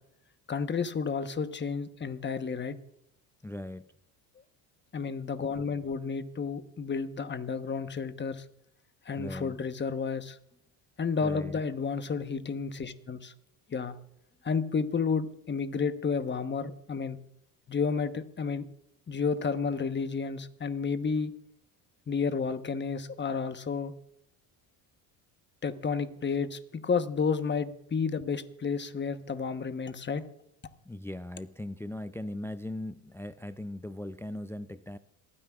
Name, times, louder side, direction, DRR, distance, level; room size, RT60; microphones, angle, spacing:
voice 1, 0.5-2.8 4.9-8.4 9.0-10.4 11.0-13.3 13.7-14.0 14.4-17.2 17.7-18.7 19.1-21.3 22.1-23.9 25.6-30.2, left 5 dB, 25° left, 11 dB, 1.1 m, -31 dB
voice 2, 3.4-3.9 9.2-9.6 11.2-11.6 30.9-35.0, left 1 dB, 5° left, 12 dB, 0.4 m, -39 dB
27.5 x 9.9 x 2.4 m, 0.75 s
supercardioid pair, 75°, 47 cm